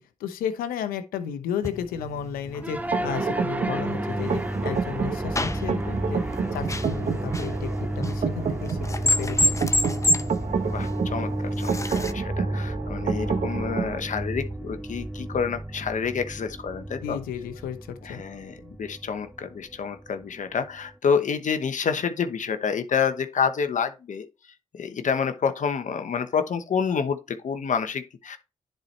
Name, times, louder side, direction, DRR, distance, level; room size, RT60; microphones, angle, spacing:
voice 1, 0.2-6.2 6.5-8.8 9.0-9.4 17.0-18.2, left 8 dB, 90° left, 0.9 m, -33 dB
sound 1, 1.6-12.1, left 2 dB, 20° left, 0.8 m, -30 dB
sound 2, 2.6-20.9, right 1 dB, 10° right, 0.7 m, -32 dB
sound 3, 2.9-14.0, right 6 dB, 55° right, 1.1 m, -30 dB
voice 2, 10.6-17.2 18.0-24.3 24.7-28.4, left 6 dB, 60° left, 1.0 m, -28 dB
10.5 x 4.4 x 3.3 m
supercardioid pair, 45°, 14 cm